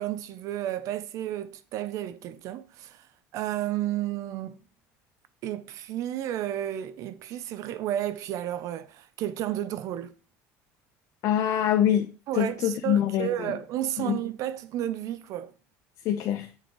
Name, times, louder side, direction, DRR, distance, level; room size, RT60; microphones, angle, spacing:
voice 1, 0.0-3.1 3.3-4.6 5.4-10.1 12.3-15.5, right 12 dB, 60° right, 0.6 m, -32 dB
voice 2, 11.2-12.1 12.4-13.6 14.0-14.2 16.0-16.5, left 10 dB, 60° left, 0.9 m, -25 dB
7.7 x 6.7 x 3.1 m
cardioid pair, 125°, 6 cm